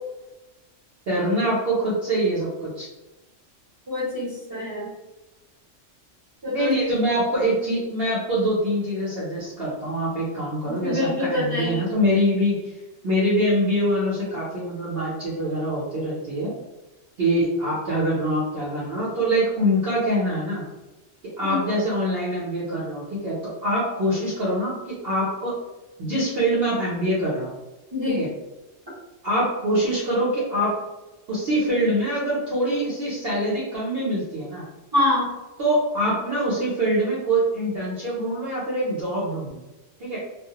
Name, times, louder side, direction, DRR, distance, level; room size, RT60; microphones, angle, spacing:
voice 1, 1.1-2.9 6.5-12.6 13.0-16.5 17.2-20.6 21.4-25.5 26.0-27.5 28.1-28.3 29.2-30.7 31.3-34.7 35.6-39.6 40.0-40.2, equal, 60° right, -8 dB, 0.9 m, -24 dB
voice 2, 3.9-4.9 6.4-6.7 10.7-11.8 21.5-21.6 27.9-28.2 34.9-35.3, left 2 dB, 20° right, -10 dB, 0.7 m, -25 dB
2.3 x 2.0 x 2.8 m, 1.0 s
omnidirectional pair, 1.3 m